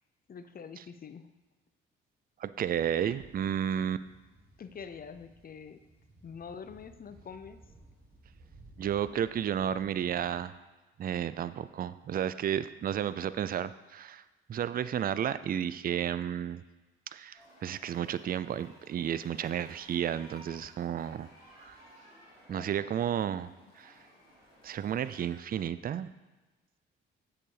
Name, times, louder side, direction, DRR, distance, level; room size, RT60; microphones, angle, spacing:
voice 1, 0.3-1.3 3.0-3.3 4.6-5.8 6.2-7.6 22.5-23.2, left 6 dB, 30° left, 11 dB, 0.6 m, -46 dB
voice 2, 2.4-4.0 8.8-10.6 11.0-14.2 14.5-16.6 17.1-21.3 21.6-21.7 22.5-23.5 23.8-23.9 24.6-26.1, right 9 dB, 30° right, 14 dB, 0.4 m, -32 dB
sound 1, 2.5-10.4, right 2 dB, 90° right, 1.9 m, -57 dB
sound 2, 17.3-25.3, equal, 85° left, 2.4 m, -57 dB
7.4 x 6.9 x 3.3 m, 1.2 s
hypercardioid pair, 40°, 29 cm